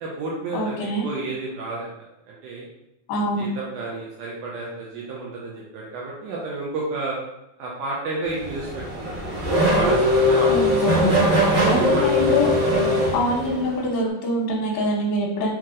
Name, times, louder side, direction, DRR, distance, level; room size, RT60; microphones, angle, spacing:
voice 1, 0.0-1.9 2.3-2.7 3.4-7.2 7.6-9.4 9.7-11.3 11.8-12.1 12.7-12.9, right 3 dB, 85° right, -4 dB, 1.8 m, -31 dB
voice 2, 0.5-1.1 3.1-3.5 10.5-11.1 11.7-12.5 13.1-15.5, left 1 dB, 75° left, -3 dB, 2.4 m, -24 dB
Race car auto racing / Accelerating revving vroom, 8.3-13.8, left 1 dB, 55° right, 2.0 m, -20 dB
6.4 x 2.9 x 2.5 m, 0.87 s
omnidirectional pair, 4.4 m